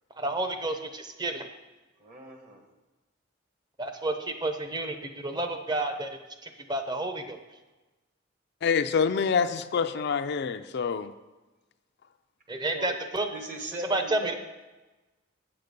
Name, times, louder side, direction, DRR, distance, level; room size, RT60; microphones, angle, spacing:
voice 1, 0.2-1.5 3.8-6.1 6.4-7.4 12.5-13.3 13.9-14.3, right 2 dB, 20° right, 6 dB, 0.8 m, -30 dB
voice 2, 2.0-2.6 12.7-12.9 13.3-14.3, right 1 dB, 40° right, 3 dB, 1.3 m, -39 dB
voice 3, 8.6-11.1, left 6 dB, 60° left, 10 dB, 0.4 m, -26 dB
7.9 x 7.6 x 5.2 m, 1.1 s
head